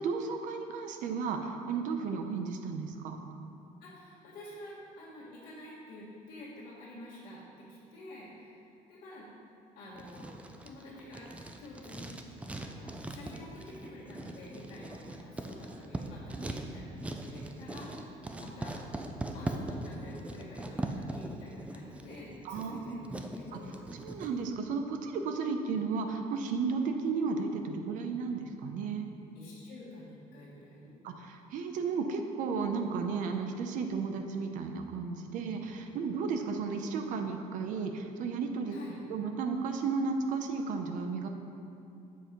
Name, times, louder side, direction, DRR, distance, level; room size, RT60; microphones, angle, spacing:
voice 1, 0.0-3.2 22.4-23.1 23.5-23.6 24.0-29.1 31.0-38.8 39.1-41.3, right 5 dB, 70° right, 5 dB, 0.7 m, -34 dB
voice 2, 3.8-9.3 9.7-11.3 11.6-12.1 12.6-18.9 19.3-23.8 29.3-30.9 38.7-39.0, left 1 dB, 80° left, -10 dB, 1.7 m, -49 dB
Writing, 10.0-24.3, right 2 dB, 10° right, 0.3 m, -41 dB
7.4 x 4.5 x 5.1 m, 2.8 s
cardioid pair, 155°, 14 cm